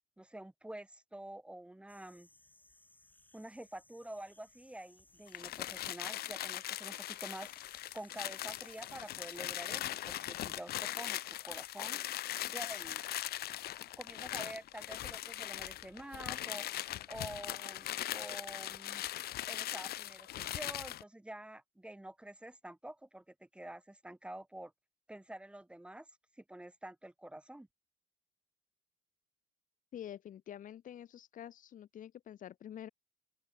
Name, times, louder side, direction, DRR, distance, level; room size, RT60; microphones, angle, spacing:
voice 1, 0.2-2.3 3.3-7.5 7.9-12.0 12.5-13.0 14.0-16.7 17.1-19.0 19.5-24.7 25.1-26.1 26.4-27.7, right 1 dB, 5° right, 1.1 m, -48 dB
sound 1, 1.9-9.6, left 2 dB, 10° left, 6.9 m, -65 dB
sound 2, 5.3-21.0, left 14 dB, 70° left, 1.8 m, -40 dB
voice 2, 29.9-32.9, left 10 dB, 50° left, 1.4 m, -47 dB
open air
cardioid pair, 110°, 17 cm